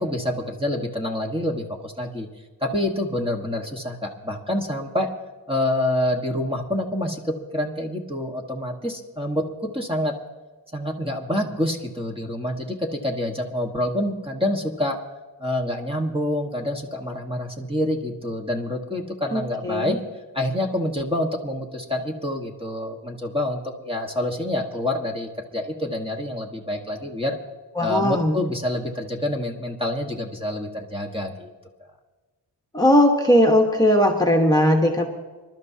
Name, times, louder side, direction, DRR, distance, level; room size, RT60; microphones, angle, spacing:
voice 1, 0.0-2.3 2.6-5.1 5.5-10.1 10.7-15.0 15.4-20.0 20.3-27.4 27.8-31.5 31.8-31.9, left 1 dB, 10° right, 1 dB, 1.4 m, -27 dB
voice 2, 19.3-20.0 27.8-28.4 32.7-35.1, equal, 10° left, 2 dB, 1.2 m, -18 dB
26.5 x 12.5 x 2.8 m, 1.3 s
wide cardioid pair, 125°, 43 cm